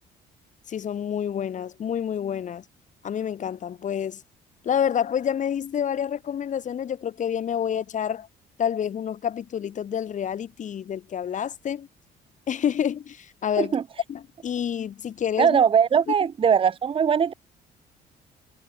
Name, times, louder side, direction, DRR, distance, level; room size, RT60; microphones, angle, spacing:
voice 1, 0.7-2.6 3.0-4.2 4.6-8.3 8.6-11.9 12.5-13.7 14.1-15.6, left 8 dB, 45° left, 2.9 m, -28 dB
voice 2, 15.4-17.3, right 7 dB, 30° right, 0.9 m, -20 dB
cardioid pair, 110°, 17 cm